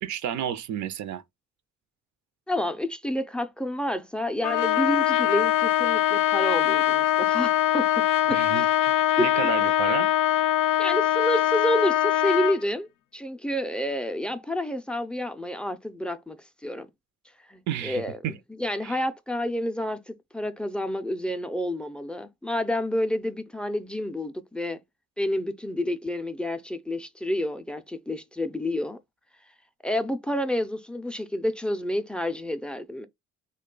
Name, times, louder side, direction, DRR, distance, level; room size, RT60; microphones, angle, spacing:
voice 1, 0.0-1.2 8.3-8.7 9.2-10.1 17.7-18.4 18.8-19.0, right 9 dB, 70° right, 0.5 m, -31 dB
voice 2, 2.5-8.7 9.2-9.3 10.8-12.9 13.1-16.4 16.6-16.9 17.5-18.2 18.6-24.8 25.2-29.0 29.8-33.1, left 1 dB, 5° left, 0.4 m, -29 dB
Trumpet, 4.4-12.6, left 12 dB, 85° left, 0.5 m, -22 dB
3.1 x 2.2 x 3.7 m
cardioid pair, 90°, 30 cm